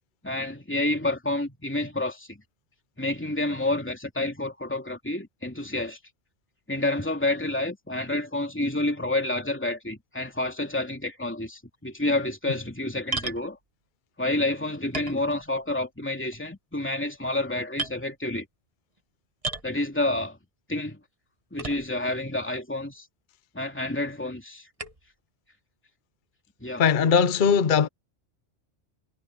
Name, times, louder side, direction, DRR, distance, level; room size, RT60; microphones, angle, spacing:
voice 1, 0.2-2.4 3.0-6.0 6.7-13.6 14.2-18.5 19.6-20.4 20.7-21.0 21.5-23.1 23.5-24.7 26.6-26.8, left 2 dB, 10° left, 2.9 m, -29 dB
sound 1, 13.1-13.5 14.3-14.4 14.9-15.8 16.1-16.5 17.1-17.4 17.8-18.0 19.4-19.8 21.6-22.1 22.8-22.9 24.8-25.1, right 3 dB, 30° right, 1.4 m, -34 dB
voice 2, 26.8-27.9, left 6 dB, 45° left, 0.9 m, -20 dB
omnidirectional pair, 1.2 m